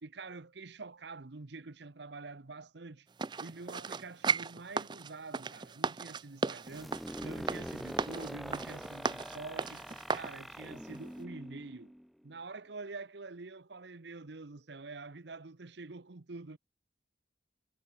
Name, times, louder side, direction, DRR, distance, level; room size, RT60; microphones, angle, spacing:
voice 1, 0.0-3.1 3.4-7.0 7.2-9.8 10.1-11.9 12.2-16.6, right 3 dB, 65° right, 0.9 m, -46 dB
sound 1, 3.2-10.3 10.9-11.0, right 5 dB, 25° right, 0.4 m, -36 dB
sound 2, 6.6-12.3, equal, ahead, 1.8 m, -44 dB
head